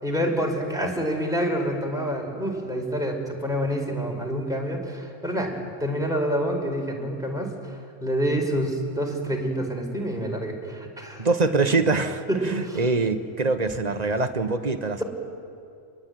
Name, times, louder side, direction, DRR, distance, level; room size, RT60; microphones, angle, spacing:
voice 1, 0.0-7.8 8.0-11.3 12.3-12.8, equal, 5° right, 0 dB, 4.6 m, -27 dB
voice 2, 11.2-15.0, right 3 dB, 35° right, 7 dB, 1.4 m, -24 dB
28.5 x 22.0 x 9.4 m, 2.4 s
omnidirectional pair, 1.3 m